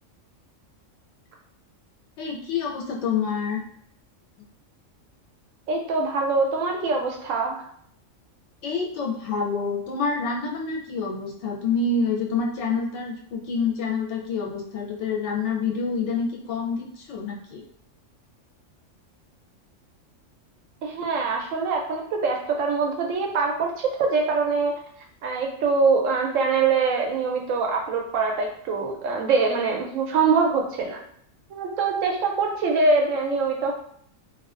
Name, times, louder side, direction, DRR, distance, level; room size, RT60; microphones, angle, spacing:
voice 1, 2.2-3.6 8.6-17.6, left 4 dB, 70° left, 0 dB, 0.8 m, -27 dB
voice 2, 5.7-7.6 20.8-24.7 25.2-31.0 31.5-33.7, right 4 dB, 85° right, 1 dB, 1.0 m, -23 dB
2.3 x 2.3 x 2.4 m, 0.66 s
omnidirectional pair, 1.3 m